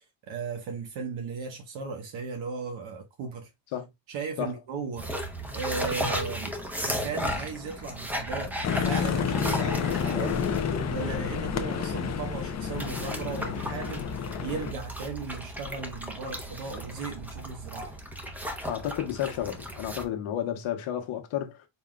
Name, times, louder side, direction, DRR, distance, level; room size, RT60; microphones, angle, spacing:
voice 1, 0.0-3.5 4.1-5.1 5.5-17.9, right 5 dB, 70° right, 1.1 m, -36 dB
sound 1, 5.0-20.0, equal, 5° right, 0.8 m, -35 dB
sound 2, 8.6-14.7, left 7 dB, 35° left, 0.7 m, -30 dB
voice 2, 18.7-21.7, left 10 dB, 75° left, 1.2 m, -32 dB
4.2 x 3.7 x 2.2 m
cardioid pair, 110°, 48 cm